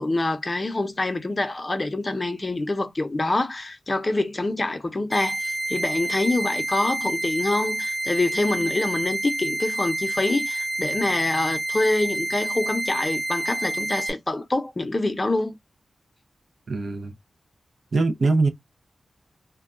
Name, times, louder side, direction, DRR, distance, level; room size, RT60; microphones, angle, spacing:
voice 1, 0.0-15.6, left 2 dB, 30° left, 0.6 m, -25 dB
sound 1, 5.1-14.1, right 1 dB, 15° right, 0.9 m, -28 dB
voice 2, 16.7-17.1 17.9-18.5, right 3 dB, 60° right, 0.5 m, -22 dB
2.2 x 2.2 x 3.6 m
cardioid pair, 65°, 0 cm